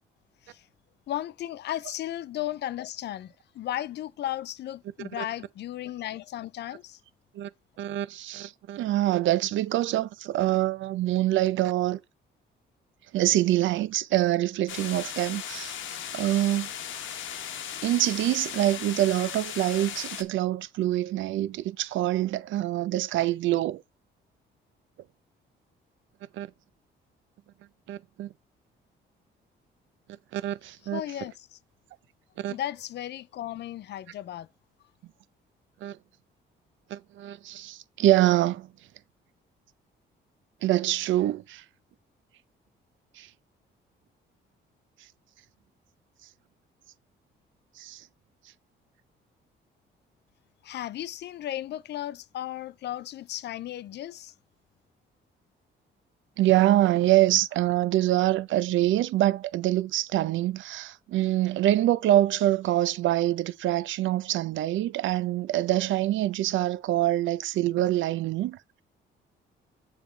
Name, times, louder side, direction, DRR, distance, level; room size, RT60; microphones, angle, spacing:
voice 1, 1.1-7.0 30.9-31.6 32.5-34.5 50.6-54.3, left 12 dB, 60° left, 0.4 m, -35 dB
voice 2, 7.8-12.0 13.1-15.7 16.1-16.7 17.8-23.8 26.3-26.5 27.9-28.3 30.3-31.0 32.4-32.5 35.8-36.0 36.9-38.7 40.6-41.6 43.2-43.3 47.8-48.0 56.4-68.6, right 14 dB, 75° right, 0.5 m, -25 dB
sound 1, 14.7-20.2, left 9 dB, 75° left, 1.0 m, -37 dB
7.2 x 3.4 x 4.3 m
cardioid pair, 90°, 20 cm